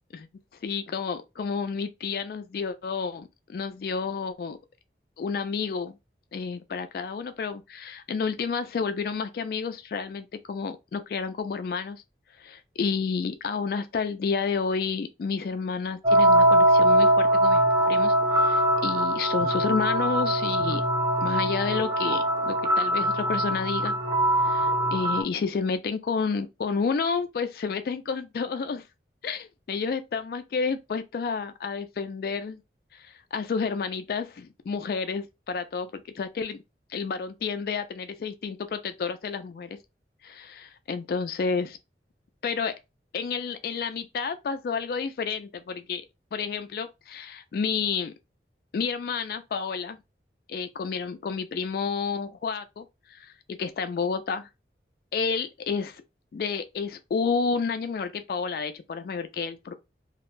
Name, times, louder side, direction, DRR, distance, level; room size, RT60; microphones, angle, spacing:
voice 1, 0.6-4.6 5.2-6.0 6.3-12.0 12.4-20.8 21.2-23.9 24.4-28.8 29.2-32.6 32.9-36.6 36.9-39.8 40.2-41.8 42.4-42.7 43.1-46.0 46.3-48.1 48.7-50.0 50.5-54.5 55.1-56.0 56.3-59.7, left 5 dB, 55° left, 0.3 m, -30 dB
sound 1, 16.0-25.2, right 1 dB, 20° right, 0.5 m, -22 dB
2.3 x 2.1 x 3.1 m
head